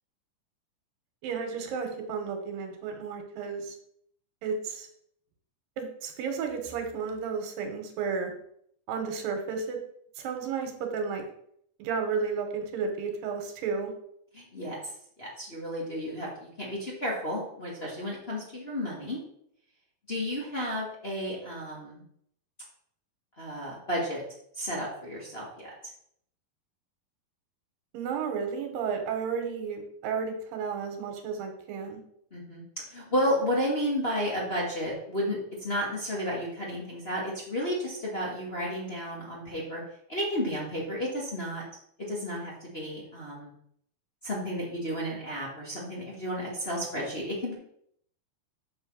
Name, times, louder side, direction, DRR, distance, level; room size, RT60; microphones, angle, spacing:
voice 1, 1.2-3.8 4.4-4.9 5.8-8.3 8.9-9.8 10.2-11.2 11.8-13.9 27.9-32.0, right 5 dB, 80° right, 4 dB, 2.9 m, -32 dB
voice 2, 14.3-19.2 20.1-22.0 23.4-24.2 24.5-25.7 32.3-32.6 32.9-39.8 40.1-41.6 42.1-43.5 44.2-47.5, equal, 50° left, -5 dB, 0.7 m, -32 dB
7.4 x 4.3 x 6.3 m, 0.68 s
omnidirectional pair, 4.1 m